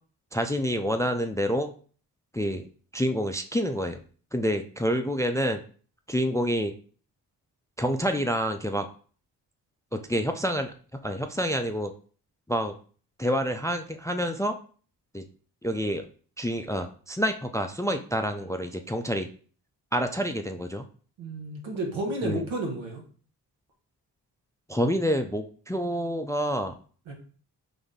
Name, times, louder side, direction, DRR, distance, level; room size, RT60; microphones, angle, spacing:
voice 1, 0.3-1.7 2.3-2.7 2.9-4.0 4.3-5.6 6.1-6.7 7.8-8.9 9.9-11.9 12.5-12.7 13.2-14.6 15.1-15.2 15.6-16.1 16.4-19.3 19.9-20.8 22.2-22.4 24.7-26.8, equal, 10° left, 7 dB, 0.3 m, -28 dB
voice 2, 21.2-23.0 27.1-27.2, right 2 dB, 85° right, 1 dB, 1.1 m, -31 dB
3.8 x 2.6 x 3.6 m, 0.42 s
supercardioid pair, 45°, 45 cm